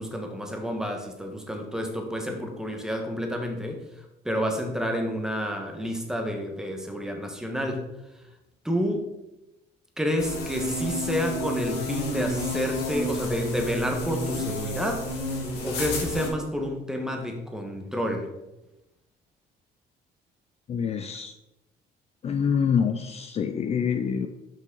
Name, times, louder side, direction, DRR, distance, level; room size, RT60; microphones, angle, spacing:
voice 1, 0.0-3.8 4.2-7.9 8.6-9.1 10.0-15.3 15.6-18.3, equal, 5° right, 3 dB, 1.2 m, -29 dB
sound 1, 10.2-16.3, left 1 dB, 80° left, 1.8 m, -31 dB
voice 2, 20.7-21.3 22.2-24.3, left 7 dB, 40° left, 8 dB, 0.4 m, -26 dB
5.9 x 5.6 x 3.9 m, 0.93 s
cardioid pair, 110°, 17 cm